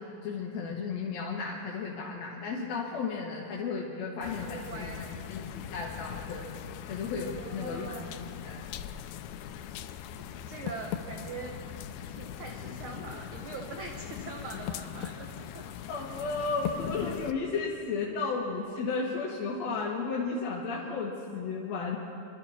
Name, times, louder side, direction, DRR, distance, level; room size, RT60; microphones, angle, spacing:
voice 1, 0.0-4.9 5.3-6.5 6.9-8.6 15.9-22.0, left 4 dB, 60° left, -3 dB, 2.3 m, -34 dB
sound 1, 4.2-17.3, left 9 dB, 80° left, 1.9 m, -40 dB
voice 2, 4.4-5.3 7.4-8.3 10.5-11.5 11.9-15.3 15.5-15.6, right 4 dB, 70° right, 1 dB, 1.3 m, -43 dB
25.5 x 13.0 x 4.2 m, 2.7 s
omnidirectional pair, 3.7 m